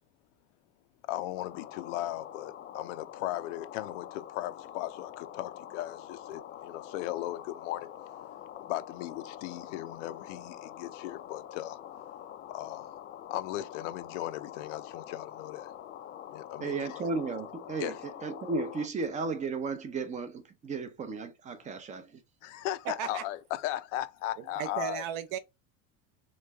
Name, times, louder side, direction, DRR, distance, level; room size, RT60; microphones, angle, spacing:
voice 1, 1.1-7.8 8.6-11.8 12.5-12.9 13.3-15.7 16.3-17.0 17.8-18.0 22.4-25.0, left 14 dB, 80° left, 0.6 m, -37 dB
sound 1, 1.4-18.9, left 10 dB, 30° left, 0.4 m, -45 dB
voice 2, 16.6-22.2, right 4 dB, 20° right, 0.5 m, -34 dB
voice 3, 22.8-23.2 24.4-25.4, right 9 dB, 55° right, 0.7 m, -35 dB
3.2 x 3.1 x 3.4 m
supercardioid pair, 140°, 37 cm